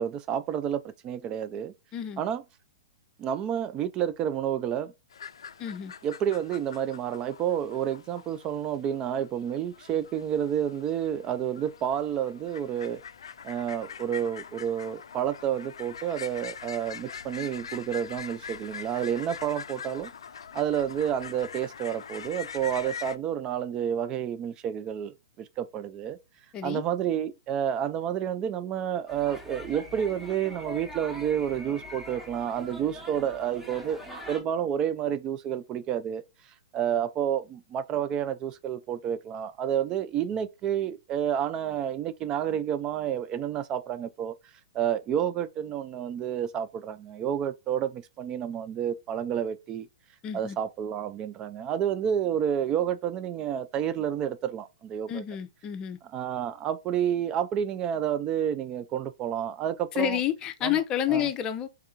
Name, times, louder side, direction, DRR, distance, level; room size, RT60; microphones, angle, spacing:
voice 1, 0.0-1.7 2.2-2.4 3.2-4.9 6.0-13.0 13.4-20.1 20.5-26.2 26.6-34.0 34.3-36.2 36.7-44.3 44.7-49.9 50.3-55.2 56.1-60.2 60.6-60.8 61.1-61.3, right 9 dB, 30° right, 0.4 m, -30 dB
sound 1, 5.1-23.2, left 7 dB, 75° left, 0.3 m, -43 dB
voice 2, 5.6-5.9 26.5-26.8 50.2-50.6 55.1-56.0 60.0-61.7, left 11 dB, 30° left, 0.6 m, -29 dB
sound 2, 29.1-34.4, equal, 5° right, 1.1 m, -43 dB
3.5 x 3.4 x 2.7 m
hypercardioid pair, 120°, 3 cm